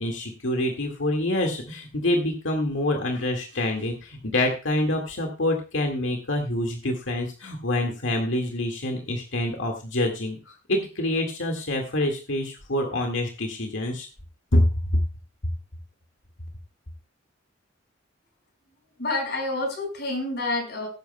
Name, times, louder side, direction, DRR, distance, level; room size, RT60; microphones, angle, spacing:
voice 1, 0.0-14.1 14.5-14.7 14.9-15.0, left 1 dB, 75° left, 3 dB, 1.9 m, -26 dB
voice 2, 19.0-20.9, left 2 dB, 60° left, 2 dB, 5.3 m, -28 dB
18.0 x 9.5 x 2.2 m, 0.31 s
head